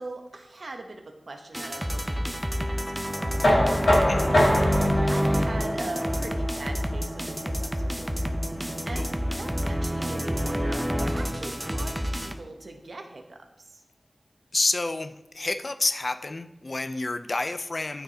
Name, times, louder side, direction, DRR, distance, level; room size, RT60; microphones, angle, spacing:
voice 1, 0.0-4.0 4.3-8.4 8.8-9.1 9.4-13.8, right 2 dB, 75° right, 4 dB, 0.9 m, -41 dB
sound 1, 1.5-12.3, equal, 5° right, 0.6 m, -28 dB
Knock, 3.4-9.2, left 1 dB, 90° left, 2.9 m, -26 dB
voice 2, 14.5-18.0, left 2 dB, 55° left, 9 dB, 0.4 m, -29 dB
12.0 x 4.6 x 2.8 m, 0.90 s
wide cardioid pair, 75°, 0 cm